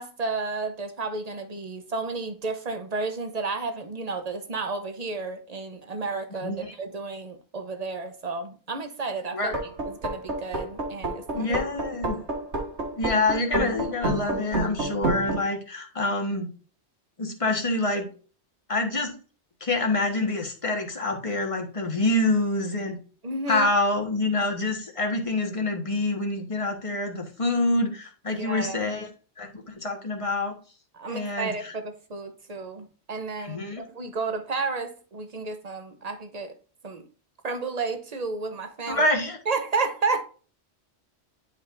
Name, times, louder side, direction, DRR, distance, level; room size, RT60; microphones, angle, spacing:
voice 1, 0.0-9.5 9.8-11.6 23.2-23.7 28.3-28.9 30.9-33.7 33.9-36.5 36.8-37.1 37.4-39.1 39.5-40.2, right 3 dB, 40° right, 1.0 m, -32 dB
voice 2, 6.4-6.7 9.3-9.6 11.3-12.2 13.0-16.5 17.2-18.1 18.7-19.1 19.6-23.0 23.5-29.1 29.4-30.5 31.1-31.7 33.4-33.8 38.9-39.4, left 2 dB, 30° left, 1.5 m, -26 dB
sound 1, 9.4-15.4, right 2 dB, 80° right, 2.0 m, -29 dB
11.0 x 5.1 x 2.6 m
omnidirectional pair, 1.1 m